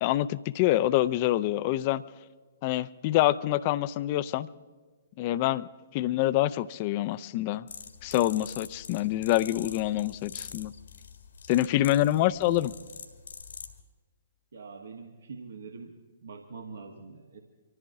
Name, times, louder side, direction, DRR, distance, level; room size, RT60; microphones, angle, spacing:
voice 1, 0.0-2.0 2.6-4.5 5.2-5.7 5.9-7.7 8.0-10.7 11.5-12.7, left 15 dB, 40° left, 16 dB, 0.5 m, -26 dB
sound 1, 7.7-13.8, left 6 dB, 70° left, 1.8 m, -45 dB
voice 2, 14.5-16.0 16.2-17.4, right 4 dB, 70° right, 3 dB, 1.3 m, -44 dB
25.0 x 14.0 x 3.6 m, 1.3 s
figure-of-eight pair, 120°, 0 cm